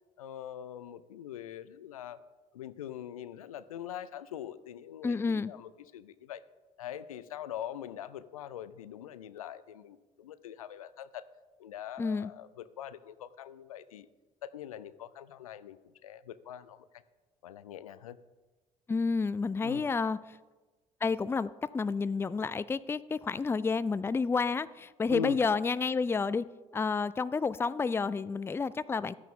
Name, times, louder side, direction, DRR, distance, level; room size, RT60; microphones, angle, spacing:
voice 1, 0.2-2.2 2.5-6.4 6.8-11.2 11.6-14.1 14.4-15.8 16.0-17.0 17.4-18.2 19.6-19.9 25.1-25.4, left 10 dB, 85° left, 15 dB, 0.4 m, -42 dB
voice 2, 5.0-5.5 12.0-12.3 18.9-20.2 21.0-26.4 26.7-29.1, left 4 dB, 15° left, 17 dB, 0.4 m, -30 dB
13.5 x 9.3 x 3.6 m, 1.2 s
figure-of-eight pair, 50°, 18 cm